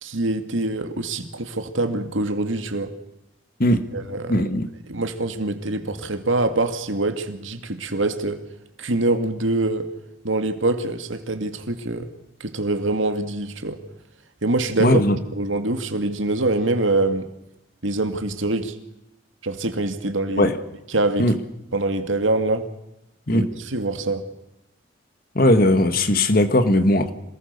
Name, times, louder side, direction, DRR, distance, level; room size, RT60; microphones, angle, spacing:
voice 1, 0.0-2.9 3.7-4.4 4.9-8.4 8.8-9.9 10.2-12.1 12.4-13.8 14.4-15.0 15.3-17.3 17.8-18.8 19.4-20.5 20.9-21.3 21.7-22.7 23.3-24.3, right 2 dB, 85° right, 2.2 m, -24 dB
voice 2, 4.3-4.7 14.8-15.2 20.4-20.5 21.2-21.4 23.3-23.5 25.3-27.1, left 1 dB, 50° left, 1.7 m, -18 dB
26.5 x 19.5 x 6.8 m
head